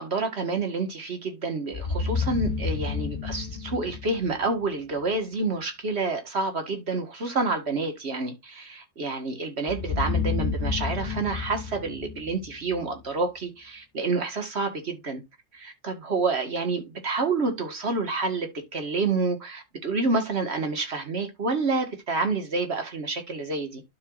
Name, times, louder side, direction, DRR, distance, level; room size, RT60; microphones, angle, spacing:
voice 1, 0.0-15.2 15.5-23.8, right 3 dB, 65° right, 2.0 m, -28 dB
sound 1, 1.7-4.7 9.7-12.9, left 5 dB, 45° left, 1.1 m, -30 dB
11.5 x 5.0 x 2.5 m
omnidirectional pair, 1.2 m